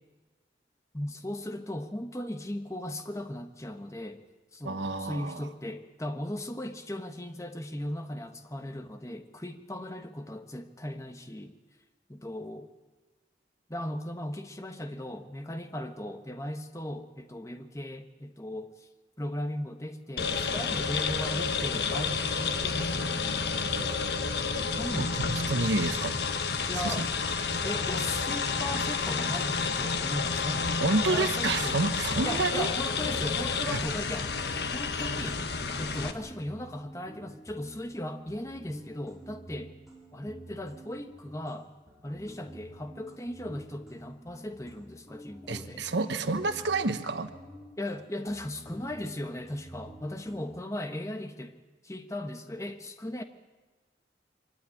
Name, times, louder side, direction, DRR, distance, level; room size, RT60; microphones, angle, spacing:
voice 1, 0.9-4.2 4.5-11.5 12.1-12.7 13.7-18.9 19.2-24.0 24.6-25.1 26.7-27.1 27.6-30.8 31.1-31.8 32.2-34.3 34.7-35.4 35.8-39.7 40.1-41.7 42.0-45.8 47.8-51.6 51.8-53.2, left 1 dB, 15° left, 7 dB, 1.3 m, -37 dB
voice 2, 4.6-5.5 25.0-26.2 26.8-27.1 30.8-32.7 33.7-33.8 45.5-47.3, right 3 dB, 85° right, 9 dB, 1.2 m, -29 dB
sound 1, 20.2-36.1, left 5 dB, 70° left, 1.4 m, -30 dB
sound 2, 32.8-35.2 35.5-41.6 41.9-48.0 48.3-50.5, right 1 dB, ahead, 5.5 m, -50 dB
24.0 x 15.5 x 10.0 m, 1.3 s
head